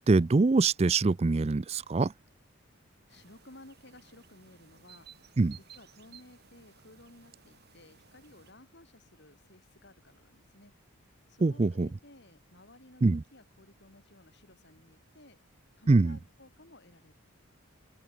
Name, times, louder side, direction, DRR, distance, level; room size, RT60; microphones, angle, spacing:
voice 1, 0.0-2.1 5.4-5.6 11.4-11.9 13.0-13.2 15.9-16.2, right 3 dB, 30° right, 0.4 m, -24 dB
voice 2, 3.1-10.7 11.3-15.4 15.8-17.1, left 1 dB, 50° left, 3.5 m, -56 dB
sound 1, 3.1-8.5, right 7 dB, 45° right, 4.6 m, -58 dB
open air
head